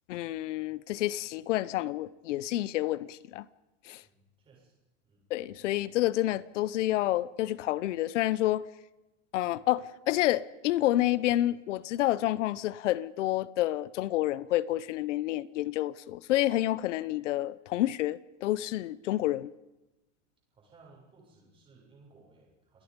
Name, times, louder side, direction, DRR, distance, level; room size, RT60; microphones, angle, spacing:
voice 1, 0.1-3.5 3.9-4.0 5.3-8.7 9.3-19.5, left 15 dB, 80° left, 1.0 m, -29 dB
voice 2, 4.0-4.7 5.0-5.2 20.5-22.8, right 3 dB, 15° right, 7.1 m, -59 dB
28.5 x 19.5 x 5.4 m
supercardioid pair, 175°, 36 cm